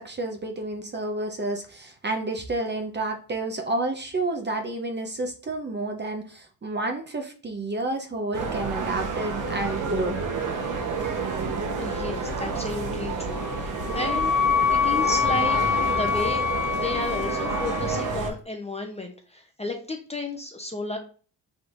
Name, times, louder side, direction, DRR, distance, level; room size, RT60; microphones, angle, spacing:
voice 1, 0.0-10.2, right 2 dB, 25° right, 4 dB, 0.8 m, -30 dB
sound 1, 8.3-18.3, right 4 dB, 50° right, 1.1 m, -29 dB
voice 2, 11.8-14.4 14.7-15.6 15.8-16.4 16.7-21.0, left 2 dB, 15° left, 3 dB, 0.7 m, -32 dB
Wind instrument woodwind instrument, 13.3-18.1, left 7 dB, 45° left, 1.6 m, -25 dB
4.4 x 3.6 x 2.5 m, 0.39 s
cardioid pair, 80°, 41 cm